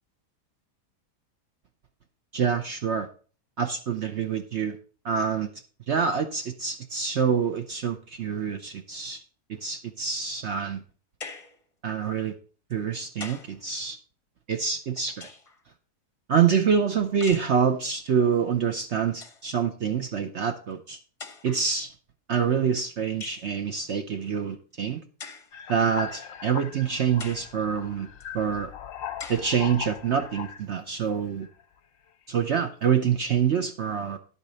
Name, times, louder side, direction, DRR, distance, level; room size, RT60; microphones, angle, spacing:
voice 1, 2.3-3.1 3.6-4.8 5.0-5.5 5.9-9.2 9.6-10.8 11.8-12.3 12.7-14.0 14.5-15.3 16.3-21.0 21.4-21.9 22.3-25.0 25.7-28.1 28.3-28.7 29.3-31.5 32.3-34.2, right 7 dB, 55° right, 7 dB, 0.8 m, -26 dB
sound 1, 11.2-11.6 12.7-13.6 14.7-15.6 17.2-17.6 18.7-18.8 19.1-19.5 20.5-20.6 21.2-21.7 23.2-23.5 25.2-25.5 26.2-26.3 27.2-27.5 28.2-28.3 29.2-29.5, left 4 dB, 25° left, 0.8 m, -42 dB
sound 2, 25.5-30.8 31.4-31.8, left 8 dB, 65° left, 1.0 m, -39 dB
10.5 x 8.3 x 4.0 m, 0.39 s
omnidirectional pair, 1.7 m